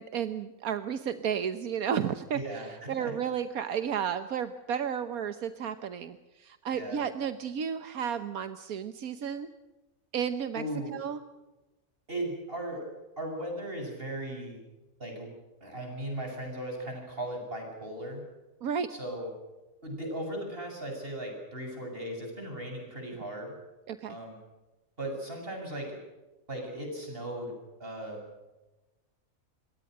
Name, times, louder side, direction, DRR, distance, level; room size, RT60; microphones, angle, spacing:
voice 1, 0.0-2.6 2.9-9.5 10.1-10.6 10.9-11.2 18.6-18.9 23.9-24.2, right 8 dB, 80° right, 10 dB, 1.5 m, -32 dB
voice 2, 2.3-3.1 6.7-7.0 10.5-10.9 12.1-12.8 13.2-14.6 15.0-15.3 15.6-18.2 18.9-19.3 19.8-23.5 24.1-24.4 25.0-26.0 26.5-27.5 27.8-28.2, right 1 dB, 40° right, 2 dB, 8.1 m, -37 dB
27.0 x 23.0 x 6.6 m, 1.1 s
omnidirectional pair, 1.5 m